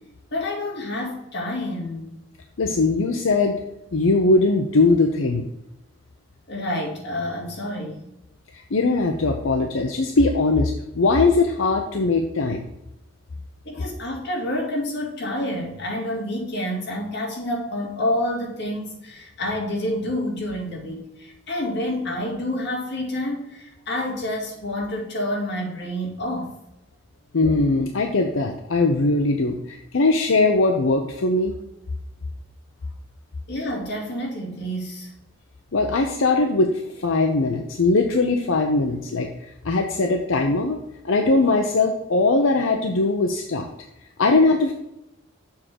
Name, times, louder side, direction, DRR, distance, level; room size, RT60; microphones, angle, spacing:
voice 1, 0.3-2.2 6.5-8.0 13.6-26.5 33.5-35.1, left 1 dB, 60° left, -2 dB, 2.5 m, -28 dB
voice 2, 2.6-3.6 3.9-5.5 8.5-12.7 27.3-31.5 35.7-39.3 39.6-40.8 41.0-43.7 44.2-44.7, left 3 dB, 85° left, 4 dB, 0.7 m, -20 dB
7.3 x 3.7 x 6.2 m, 0.89 s
head